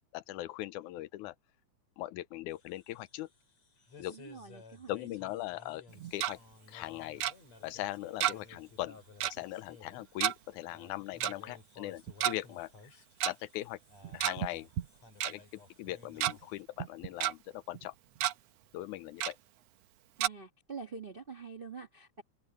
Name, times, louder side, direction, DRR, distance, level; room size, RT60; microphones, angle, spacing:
voice 1, 0.1-1.4 2.0-3.3 4.0-4.2 4.9-5.8 6.1-6.4 6.7-7.2 7.6-12.7 13.2-13.8 14.1-14.7 15.2-17.9 18.7-19.4, left 16 dB, 80° left, 2.0 m, -40 dB
sound 1, 2.5-16.6, left 4 dB, 60° left, 6.9 m, -57 dB
voice 2, 4.1-5.1 20.2-22.2, right 5 dB, 45° right, 0.7 m, -46 dB
Tick-tock, 5.9-6.3 7.2-7.3 8.2-8.6 8.8-8.9 9.2-9.4 10.2-10.3 11.2-11.3 12.1-12.3 13.2-13.3 14.0-14.5 14.8-14.9 15.2-15.3 15.9-16.3 16.8-17.3 17.7-17.9 18.2-18.3 19.2-19.3 20.2-20.3, right 13 dB, 65° right, 1.8 m, -31 dB
open air
omnidirectional pair, 3.6 m